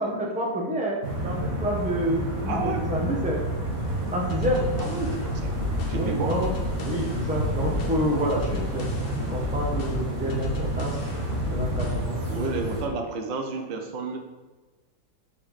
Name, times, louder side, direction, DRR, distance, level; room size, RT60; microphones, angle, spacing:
voice 1, 0.0-3.4 4.1-4.7 5.9-6.5 6.8-8.9 9.3-11.0 11.5-12.2, equal, 5° right, -3 dB, 1.1 m, -28 dB
sound 1, 1.0-12.8, right 1 dB, 50° right, 1.7 m, -30 dB
voice 2, 2.5-2.8 4.8-5.5 5.9-6.4 12.3-14.2, right 3 dB, 80° right, 4 dB, 1.6 m, -31 dB
sound 2, 4.3-12.1, left 3 dB, 55° left, 0.6 m, -34 dB
5.3 x 4.9 x 5.7 m, 1.3 s
omnidirectional pair, 2.0 m